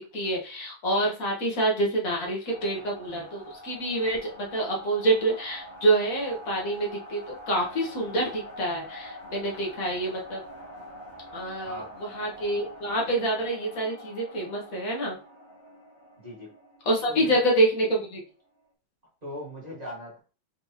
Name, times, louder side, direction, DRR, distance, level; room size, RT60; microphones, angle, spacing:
voice 1, 0.1-10.4 11.3-15.2 16.8-18.2, right 1 dB, 65° left, -2 dB, 1.6 m, -27 dB
sound 1, 2.5-18.3, equal, 50° left, 1.8 m, -45 dB
voice 2, 11.6-12.0 16.2-16.5 17.1-17.3 19.2-20.2, left 1 dB, 25° right, -5 dB, 1.7 m, -40 dB
4.3 x 3.2 x 2.8 m, 0.36 s
omnidirectional pair, 1.6 m